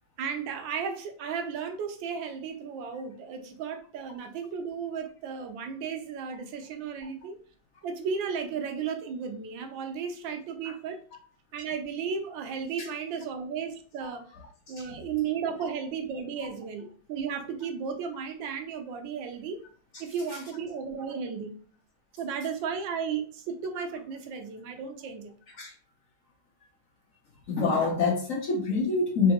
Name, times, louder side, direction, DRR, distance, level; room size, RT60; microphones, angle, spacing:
voice 1, 0.2-7.4 7.8-11.0 11.5-14.3 14.7-19.6 20.0-21.5 22.1-25.3, right 6 dB, 80° right, 6 dB, 1.4 m, -34 dB
voice 2, 27.5-29.3, left 4 dB, 55° left, -1 dB, 1.0 m, -26 dB
3.8 x 3.3 x 2.8 m, 0.43 s
omnidirectional pair, 2.0 m